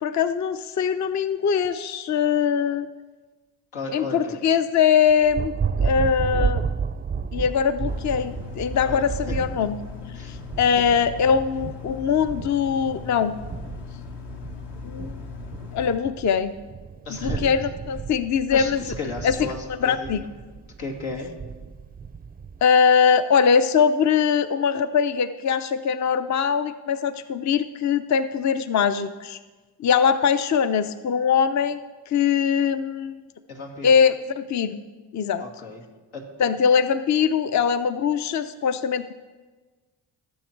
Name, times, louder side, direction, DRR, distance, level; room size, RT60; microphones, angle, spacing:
voice 1, 0.0-2.9 3.9-6.7 7.3-9.8 10.3-13.3 14.8-15.2 15.7-16.5 17.2-18.8 19.2-19.3 19.8-20.2 22.6-29.4 29.8-31.8 32.1-33.2 33.8-34.8 35.1-35.4 36.4-39.1, left 7 dB, 40° left, 11 dB, 0.5 m, -22 dB
voice 2, 3.7-4.4 8.8-9.4 10.1-10.3 17.1-17.5 18.5-20.3 20.8-21.3 33.5-33.9 35.4-35.8 36.1-36.3, left 3 dB, 85° left, 0 dB, 2.3 m, -34 dB
Thunder, 5.1-22.6, right 6 dB, 20° right, 0.4 m, -32 dB
sound 1, 7.8-16.0, left 8 dB, 60° left, 1.3 m, -39 dB
17.5 x 7.1 x 4.5 m, 1.3 s
cardioid pair, 75°, 46 cm